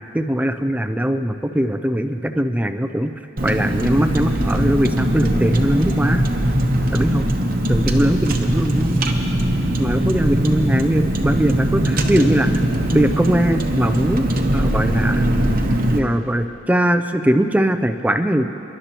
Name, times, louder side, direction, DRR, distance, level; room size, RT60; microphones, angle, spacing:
voice 1, 0.1-3.1 3.4-6.3 6.9-7.3 7.7-9.0 9.8-12.5 12.9-14.3 14.5-15.3 15.9-18.5, right 1 dB, 5° right, 8 dB, 0.4 m, -20 dB
Car, 3.4-16.0, right 1 dB, 45° right, 0.9 m, -20 dB
29.5 x 11.5 x 3.0 m, 2.8 s
head